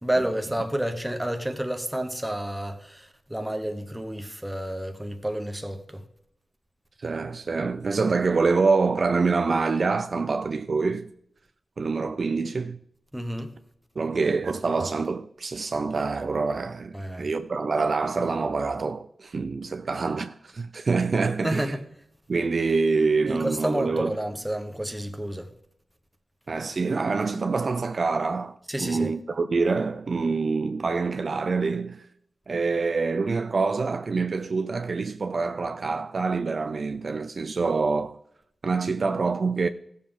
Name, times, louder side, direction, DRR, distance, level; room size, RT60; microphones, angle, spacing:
voice 1, 0.0-6.0 13.1-13.5 16.9-17.3 21.4-21.8 23.3-25.5 28.7-29.1, right 1 dB, 5° right, 0.9 m, -30 dB
voice 2, 7.0-11.1 11.8-12.8 14.0-21.7 22.3-24.1 26.5-32.1 32.5-38.2 38.6-39.7, right 4 dB, 45° right, 0.4 m, -26 dB
16.5 x 7.0 x 3.7 m
wide cardioid pair, 175°, 0 cm